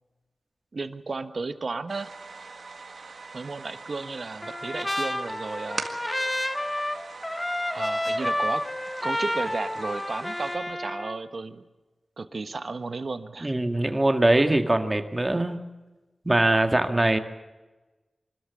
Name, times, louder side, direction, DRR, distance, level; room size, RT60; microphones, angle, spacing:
voice 1, 0.7-2.1 3.3-5.9 7.7-8.6 9.0-11.6 12.2-13.5 16.8-17.1, right 3 dB, 60° right, 11 dB, 1.2 m, -33 dB
sound 1, 1.9-10.6, right 4 dB, 75° right, 1.8 m, -42 dB
Trumpet, 4.4-11.1, left 1 dB, 15° left, 1.6 m, -30 dB
voice 2, 13.4-15.6 16.3-17.2, right 1 dB, 25° right, 7 dB, 1.9 m, -22 dB
24.0 x 13.0 x 8.4 m, 1.2 s
cardioid pair, 50°, 0 cm